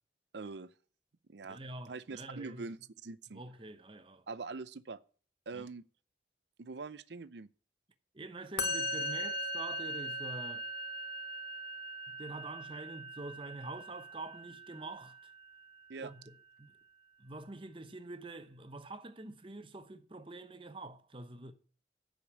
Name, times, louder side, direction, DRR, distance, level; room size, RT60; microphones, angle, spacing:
voice 1, 0.3-0.7 1.3-1.6 1.9-3.4 4.3-5.0 5.5-5.8 6.6-7.5 15.9-16.1, right 4 dB, 70° right, 0.6 m, -43 dB
voice 2, 1.5-2.7 3.3-4.2 5.5-5.6 8.1-10.7 12.1-15.3 16.0-16.3 16.6-16.7 17.2-21.5, right 2 dB, 30° right, 0.9 m, -46 dB
Musical instrument, 8.6-15.9, equal, 60° left, 1.3 m, -40 dB
11.0 x 5.3 x 8.5 m
head